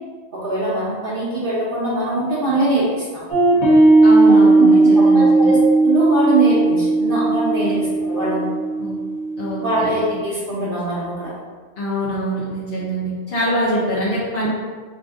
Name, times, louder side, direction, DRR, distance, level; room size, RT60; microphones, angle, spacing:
voice 1, 0.3-3.2 4.3-8.5 9.6-11.3, right 2 dB, 60° right, -8 dB, 0.9 m, -22 dB
sound 1, 3.3-10.2, right 2 dB, 85° left, 1.5 m, -16 dB
voice 2, 4.0-5.5 7.6-7.8 8.8-9.0 9.4-9.9 11.8-14.5, equal, 65° left, -8 dB, 1.0 m, -24 dB
3.5 x 2.6 x 3.5 m, 1.5 s
omnidirectional pair, 1.1 m